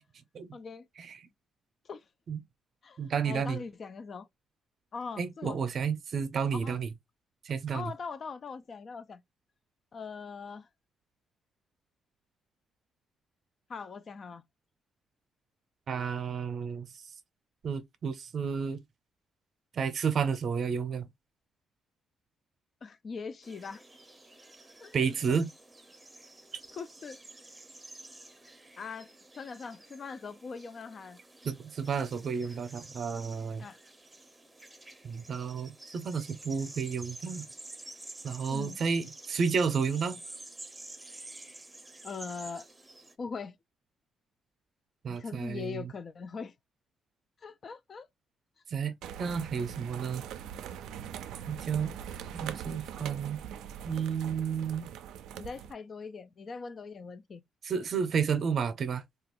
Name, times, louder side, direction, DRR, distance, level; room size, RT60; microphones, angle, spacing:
voice 1, 0.5-0.9 1.9-2.0 2.8-4.3 4.9-5.6 6.5-6.8 7.7-9.2 9.9-10.7 13.7-14.4 22.8-23.8 24.8-24.9 26.7-27.2 28.8-31.2 32.5-32.6 33.6-33.8 38.5-38.8 42.0-42.7 43.2-43.6 45.1-46.5 47.4-48.1 55.4-57.4, left 5 dB, 45° left, 0.3 m, -41 dB
voice 2, 3.0-3.6 5.2-6.9 7.4-7.9 15.9-16.9 17.6-18.8 19.7-21.1 24.9-25.5 26.5-26.6 31.4-33.7 35.0-37.4 38.2-40.2 45.0-45.8 48.7-48.9 49.2-50.2 51.5-51.9 52.3-53.4 53.8-54.9 57.6-59.0, right 6 dB, 55° right, 0.6 m, -31 dB
sound 1, 23.4-43.1, right 2 dB, 15° right, 0.6 m, -50 dB
sound 2, 49.0-55.7, right 9 dB, 85° right, 0.3 m, -42 dB
2.9 x 2.4 x 2.9 m
cardioid pair, 90°, 0 cm